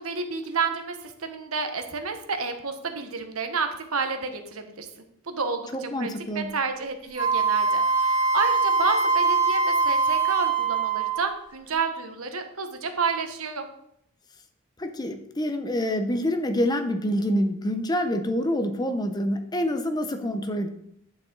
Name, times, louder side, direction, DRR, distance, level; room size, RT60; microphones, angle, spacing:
voice 1, 0.0-4.9 5.3-6.1 6.3-13.6, right 4 dB, 80° right, 6 dB, 1.1 m, -30 dB
voice 2, 5.7-6.6 14.8-20.7, equal, 20° left, 7 dB, 0.7 m, -26 dB
Wind instrument woodwind instrument, 7.2-11.3, right 4 dB, 60° left, 1.8 m, -23 dB
10.5 x 6.2 x 3.9 m, 0.75 s
head